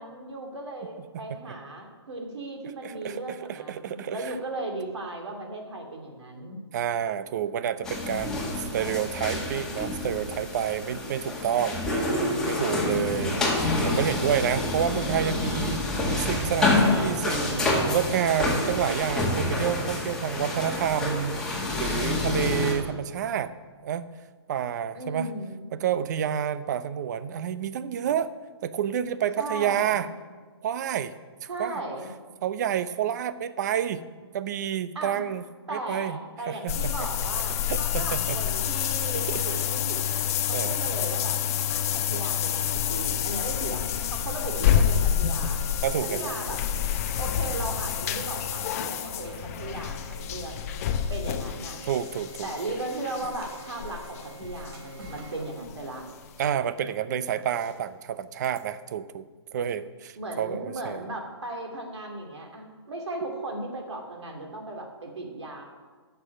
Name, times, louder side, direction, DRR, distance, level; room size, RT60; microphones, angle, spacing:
voice 1, 0.0-6.6 24.9-25.7 29.4-30.1 31.5-32.1 34.9-35.2 35.7-41.4 41.7-45.6 46.0-46.6 47.2-51.8 52.4-56.1 60.2-65.6, right 2 dB, 85° right, 1 dB, 2.7 m, -36 dB
voice 2, 1.1-1.5 2.8-4.4 6.7-23.5 23.8-24.1 24.5-25.3 25.7-28.3 28.6-30.1 30.6-31.1 31.4-31.8 32.4-34.0 34.3-35.4 35.7-36.2 36.5-37.3 37.7-38.4 39.3-39.4 40.5-40.9 42.1-42.2 45.8-46.3 51.8-52.5 56.4-59.3 59.5-61.0, right 9 dB, 40° right, 14 dB, 0.6 m, -29 dB
sound 1, 7.8-22.7, left 2 dB, 5° left, 1.7 m, -27 dB
sound 2, 36.7-55.4 55.7-55.8 56.3-56.4, left 9 dB, 35° left, 0.7 m, -28 dB
sound 3, 45.4-58.7, right 3 dB, 60° right, 3.4 m, -48 dB
9.7 x 6.7 x 7.6 m, 1.4 s
hypercardioid pair, 150°, 14 cm